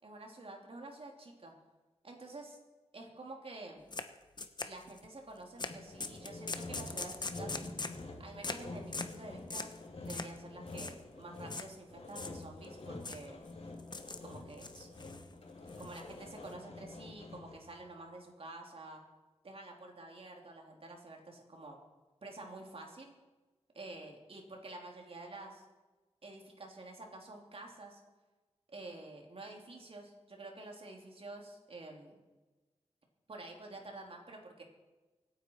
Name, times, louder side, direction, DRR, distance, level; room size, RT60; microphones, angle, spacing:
voice 1, 0.0-1.5 2.0-2.6 2.9-3.9 4.6-7.6 8.2-9.7 10.1-13.4 14.2-14.9 15.8-19.0 19.4-21.8 22.2-23.1 23.7-25.6 26.2-28.0 28.7-32.2 33.3-34.6, right 2 dB, 55° right, 1 dB, 3.2 m, -49 dB
sound 1, 3.9-4.1 4.4-5.1 5.6-5.7 6.0-8.0 8.4-8.6 8.9-9.2 9.5-9.8 10.1-10.4 10.7-10.9 11.5-11.7 12.1-12.7 13.0-13.3 13.8-14.3 14.6-15.2 15.7-16.5, left 3 dB, 40° left, 1.0 m, -41 dB
Sawing, 5.7-17.7, left 2 dB, 65° left, 3.1 m, -47 dB
25.5 x 9.7 x 4.7 m, 1.2 s
wide cardioid pair, 100°, 11 cm